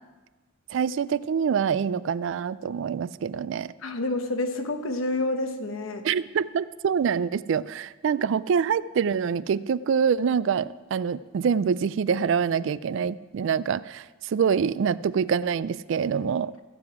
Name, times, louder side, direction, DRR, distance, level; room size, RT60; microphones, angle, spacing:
voice 1, 0.7-3.7 6.0-16.5, right 6 dB, 65° right, 18 dB, 0.3 m, -25 dB
voice 2, 3.8-6.1, left 2 dB, 85° left, 7 dB, 1.1 m, -28 dB
14.5 x 7.8 x 4.8 m, 1.2 s
head